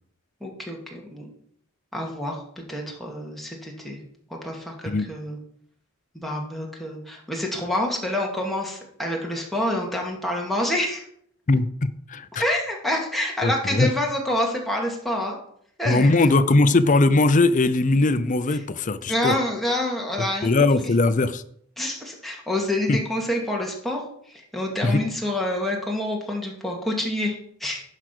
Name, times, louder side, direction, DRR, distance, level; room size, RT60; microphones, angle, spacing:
voice 1, 0.4-1.3 1.9-2.4 2.7-4.0 4.3-5.4 6.1-11.0 12.4-15.4 15.8-16.1 19.0-20.5 20.8-20.9 21.8-24.0 24.3-27.8, left 1 dB, ahead, -2 dB, 2.1 m, -27 dB
voice 2, 11.5-12.4 13.4-13.9 15.9-19.3 20.4-21.4 22.9-23.0 24.8-25.0, left 2 dB, 40° left, 13 dB, 0.6 m, -20 dB
11.0 x 5.0 x 6.2 m, 0.66 s
head